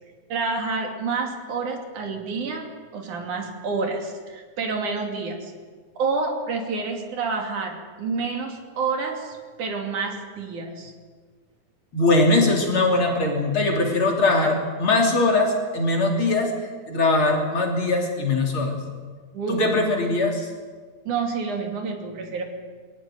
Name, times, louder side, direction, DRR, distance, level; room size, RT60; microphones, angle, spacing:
voice 1, 0.3-2.7 2.9-5.5 6.0-10.9 12.4-12.5 19.3-19.8 21.1-22.4, right 4 dB, 75° right, 3 dB, 4.1 m, -28 dB
voice 2, 11.9-16.5 16.9-18.7 19.5-20.5, left 2 dB, 40° left, 1 dB, 3.9 m, -21 dB
22.5 x 17.5 x 9.3 m, 1.5 s
omnidirectional pair, 3.6 m